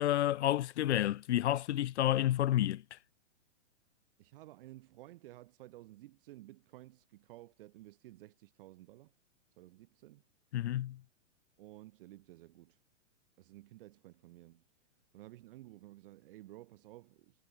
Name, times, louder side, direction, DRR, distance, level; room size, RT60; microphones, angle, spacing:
voice 1, 0.0-2.8 10.5-11.0, left 13 dB, 60° left, 1.0 m, -30 dB
voice 2, 4.2-9.1 9.6-10.2 11.6-12.8 13.4-14.6 15.1-17.4, right 17 dB, 45° right, 6.1 m, -54 dB
hypercardioid pair, 165°, 38 cm